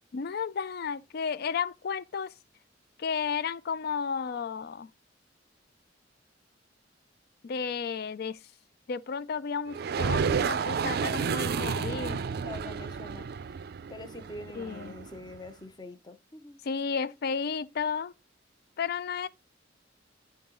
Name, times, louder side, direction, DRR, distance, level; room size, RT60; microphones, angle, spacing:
voice 1, 0.1-2.3 3.0-4.9 7.4-8.4 8.9-12.2 14.6-15.0 16.6-18.1 18.8-19.3, left 6 dB, 55° left, 0.4 m, -33 dB
sound 1, 9.7-15.4, right 6 dB, 55° right, 0.4 m, -31 dB
voice 2, 11.4-13.3 13.9-16.6, left 2 dB, 25° left, 0.8 m, -45 dB
10.5 x 3.8 x 3.7 m
head